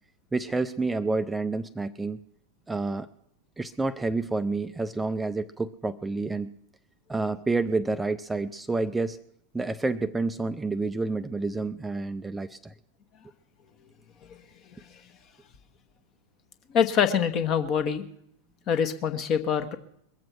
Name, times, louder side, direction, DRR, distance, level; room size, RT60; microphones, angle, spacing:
voice 1, 0.3-2.2 2.7-3.1 3.6-6.5 7.1-9.2 9.5-12.7, right 3 dB, 10° right, 9 dB, 0.5 m, -29 dB
voice 2, 14.7-15.0 16.7-18.0 18.7-19.8, left 7 dB, 35° left, 9 dB, 1.3 m, -25 dB
22.0 x 7.7 x 6.1 m, 0.71 s
figure-of-eight pair, 90°, 0 cm